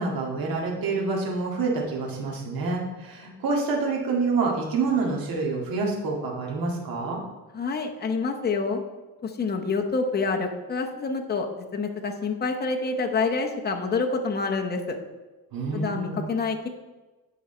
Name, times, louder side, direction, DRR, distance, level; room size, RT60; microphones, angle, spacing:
voice 1, 0.0-7.2 15.5-16.2, right 3 dB, 70° right, -2 dB, 2.0 m, -27 dB
voice 2, 7.5-8.8 9.2-11.5 11.7-15.0 15.7-16.7, left 4 dB, 25° left, 3 dB, 0.8 m, -27 dB
8.9 x 5.0 x 4.3 m, 1.2 s
cardioid pair, 145°, 36 cm